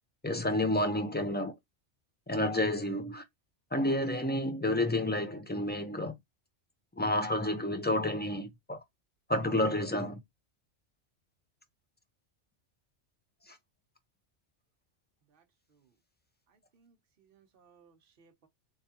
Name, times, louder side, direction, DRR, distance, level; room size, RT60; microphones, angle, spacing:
voice 1, 0.2-1.6 2.3-3.2 3.7-6.1 7.0-8.8 9.3-10.2, left 1 dB, 15° left, 0.3 m, -30 dB
voice 2, 16.5-18.5, right 6 dB, 50° right, 1.0 m, -65 dB
3.5 x 3.2 x 2.8 m
omnidirectional pair, 1.2 m